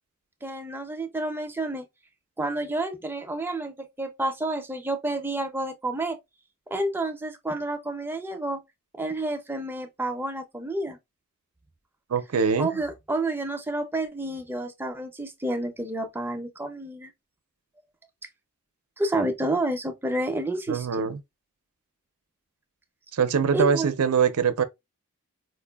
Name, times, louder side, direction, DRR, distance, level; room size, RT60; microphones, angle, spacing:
voice 1, 0.4-1.8 2.4-6.2 6.7-8.6 8.9-11.0 12.6-17.1 19.0-21.1 23.5-23.9, right 2 dB, 10° right, 0.5 m, -29 dB
voice 2, 12.1-12.7 20.7-21.2 23.1-24.6, right 6 dB, 80° right, 0.5 m, -23 dB
4.4 x 2.6 x 2.3 m
head